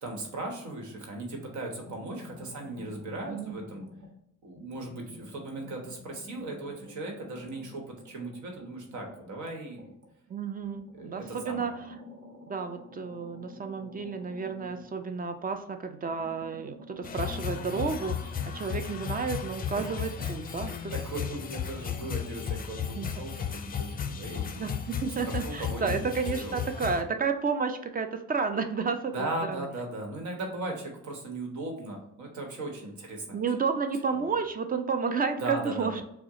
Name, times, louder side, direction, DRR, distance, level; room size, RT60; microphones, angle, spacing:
voice 1, 0.0-3.9 4.4-9.9 10.9-11.8 19.8-20.5 20.9-24.7 25.2-26.0 26.4-26.5 29.1-33.4 34.1-34.3 35.4-36.0, right 2 dB, 70° right, 2 dB, 1.1 m, -38 dB
sound 1, 1.7-4.2 4.5-10.1 10.6-15.6 16.0-19.3, left 1 dB, 50° right, 1.3 m, -49 dB
voice 2, 3.3-3.6 10.3-11.7 12.5-20.9 22.9-23.2 24.6-29.7 33.3-36.0, right 5 dB, 30° right, 7 dB, 0.5 m, -31 dB
sound 2, 17.0-27.0, left 7 dB, 30° left, 0.4 m, -35 dB
4.5 x 2.1 x 3.6 m, 0.77 s
cardioid pair, 90°, 30 cm